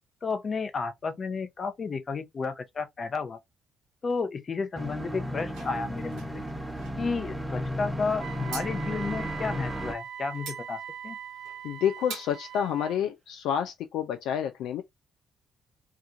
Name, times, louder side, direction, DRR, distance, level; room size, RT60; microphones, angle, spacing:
voice 1, 0.2-3.4 4.0-6.4 7.0-11.2, left 4 dB, 45° left, 0.7 m, -32 dB
sound 1, 4.7-9.9, equal, 10° right, 0.7 m, -34 dB
sound 2, 5.5-6.9 8.5-8.7 10.3-10.6 11.4-11.6 12.1-12.3, right 5 dB, 70° right, 1.1 m, -42 dB
Wind instrument woodwind instrument, 8.2-13.0, right 9 dB, 50° right, 0.6 m, -41 dB
voice 2, 11.6-14.8, left 9 dB, 70° left, 0.3 m, -29 dB
2.8 x 2.4 x 3.6 m
hypercardioid pair, 45°, 0 cm